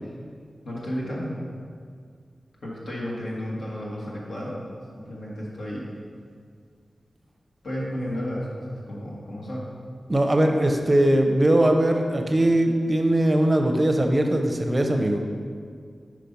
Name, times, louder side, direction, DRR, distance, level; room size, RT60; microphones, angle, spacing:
voice 1, 0.6-1.4 2.6-4.6 4.9-5.9 7.6-9.7, equal, 75° left, -5 dB, 1.7 m, -32 dB
voice 2, 10.1-15.2, right 1 dB, 25° right, 4 dB, 0.6 m, -20 dB
5.7 x 4.7 x 5.3 m, 2.1 s
wide cardioid pair, 85°, 0 cm